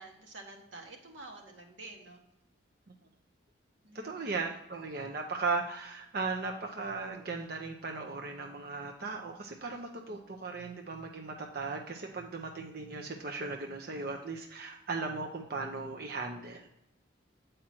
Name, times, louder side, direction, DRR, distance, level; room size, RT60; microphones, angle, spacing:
voice 1, 0.0-2.2 3.8-4.3, right 2 dB, 75° right, 1 dB, 1.4 m, -49 dB
voice 2, 4.0-16.7, right 3 dB, 50° right, 2 dB, 0.6 m, -37 dB
7.3 x 5.0 x 4.3 m, 0.86 s
head